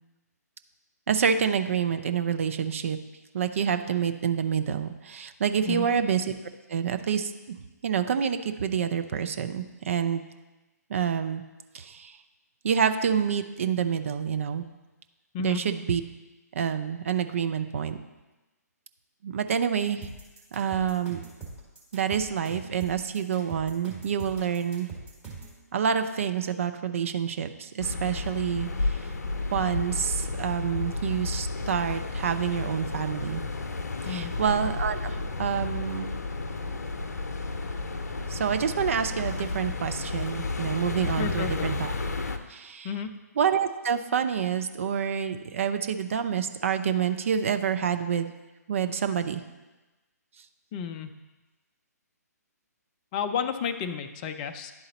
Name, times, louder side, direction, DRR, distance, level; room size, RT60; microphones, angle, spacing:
voice 1, 1.1-3.0 3.3-6.3 6.7-7.3 7.8-10.2 10.9-11.4 11.7-12.2 12.6-14.6 15.4-16.0 16.5-18.0 19.2-20.1 20.5-21.2 21.9-24.9 25.7-29.0 29.5-33.4 34.1-36.1 38.3-41.9 42.5-42.9 43.4-48.3 48.7-49.4, right 7 dB, 50° right, 9 dB, 0.5 m, -27 dB
sound 1, 20.0-25.6, right 4 dB, 10° right, 1.5 m, -42 dB
sound 2, 27.8-42.4, left 3 dB, 70° left, 0.6 m, -32 dB
voice 2, 41.2-41.7 42.8-43.1 50.7-51.1 53.1-54.7, left 7 dB, 25° left, 8 dB, 0.4 m, -31 dB
10.5 x 3.9 x 4.0 m, 1.1 s
figure-of-eight pair, 135°, 9 cm